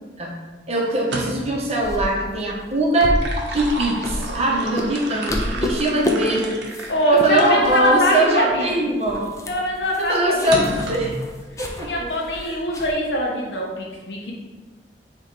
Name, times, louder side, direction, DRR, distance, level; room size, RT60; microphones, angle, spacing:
voice 1, 0.7-3.2 3.5-6.5 7.1-9.3 10.0-11.2 11.6-12.1 12.5-12.6, right 1 dB, 40° right, -2 dB, 0.8 m, -21 dB
sound 1, 0.9-1.6 2.9-7.8 8.4-8.5 10.5-11.2, right 2 dB, 85° right, 0.7 m, -31 dB
sound 2, 1.8-4.5 4.8-5.0 5.3-6.1 6.4-6.9 7.2-7.3 7.6-8.2 8.5-8.6 8.9-12.9, left 1 dB, 20° left, 0.4 m, -29 dB
voice 2, 6.9-8.7 9.5-10.6 11.6-14.3, equal, 75° left, -1 dB, 0.9 m, -22 dB
3.7 x 3.0 x 4.4 m, 1.3 s
head